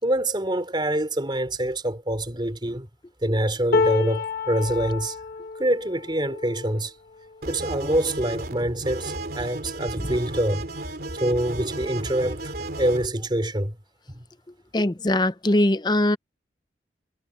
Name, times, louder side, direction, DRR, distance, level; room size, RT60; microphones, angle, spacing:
voice 1, 0.0-2.9 3.2-5.2 5.6-6.9 7.5-10.6 11.1-12.5 12.8-13.7, right 1 dB, 25° right, 4.3 m, -25 dB
sound 1, 3.7-9.9 10.5-10.7 10.9-11.7 12.7-12.8, left 4 dB, 55° left, 1.4 m, -30 dB
sound 2, 7.4-13.1, right 2 dB, 60° right, 3.4 m, -34 dB
voice 2, 14.7-16.2, left 1 dB, 25° left, 0.7 m, -21 dB
head